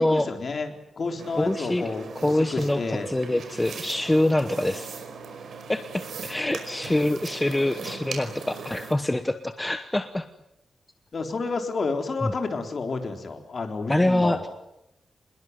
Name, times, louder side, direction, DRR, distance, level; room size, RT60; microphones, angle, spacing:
voice 1, 0.0-3.1 11.1-14.5, left 4 dB, 40° left, 5 dB, 3.8 m, -30 dB
sound 1, 1.2-8.9, right 5 dB, 70° right, 5.2 m, -39 dB
voice 2, 1.4-1.9 2.2-4.9 5.7-10.3 12.2-12.3 13.9-14.4, left 1 dB, 10° left, 9 dB, 1.0 m, -25 dB
26.5 x 21.5 x 9.5 m, 0.84 s
wide cardioid pair, 160°, 0 cm